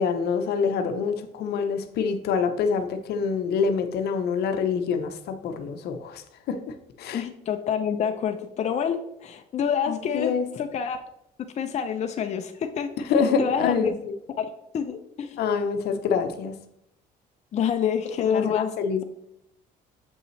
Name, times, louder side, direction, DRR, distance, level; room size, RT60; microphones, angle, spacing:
voice 1, 0.0-6.2 6.5-6.6 7.0-7.2 9.9-10.4 13.1-14.1 15.4-16.5 18.2-19.0, left 5 dB, 75° left, 7 dB, 0.8 m, -26 dB
voice 2, 7.1-11.0 11.6-12.9 13.4-13.9 14.4-14.5 14.7-15.4 17.5-18.7, left 7 dB, 40° left, 6 dB, 0.6 m, -27 dB
7.3 x 5.4 x 3.2 m, 0.78 s
cardioid pair, 110°, 17 cm